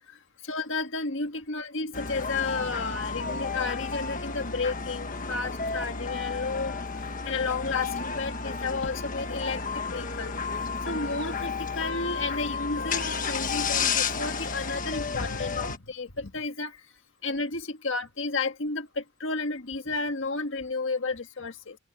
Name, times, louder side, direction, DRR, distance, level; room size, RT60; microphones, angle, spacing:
voice 1, 0.1-16.8 17.2-21.8, left 3 dB, 65° left, 1.8 m, -32 dB
sound 1, 1.9-15.8, left 5 dB, 40° left, 1.4 m, -32 dB
head